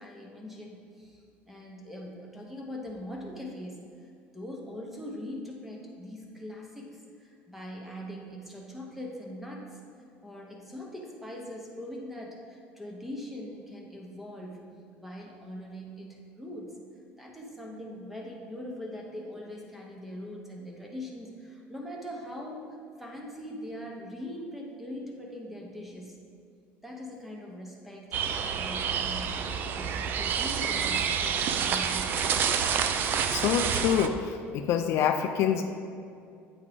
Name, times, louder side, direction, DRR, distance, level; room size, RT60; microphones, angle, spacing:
voice 1, 0.0-4.1 4.3-9.8 10.2-14.6 15.0-16.7 17.2-22.7 23.0-26.2 26.8-32.4, left 1 dB, 5° right, -1 dB, 0.9 m, -41 dB
sound 1, 28.1-34.1, right 7 dB, 40° right, 0.3 m, -28 dB
voice 2, 33.3-35.6, left 8 dB, 55° left, 7 dB, 0.3 m, -26 dB
8.5 x 3.6 x 5.0 m, 2.4 s
cardioid pair, 160°, 5 cm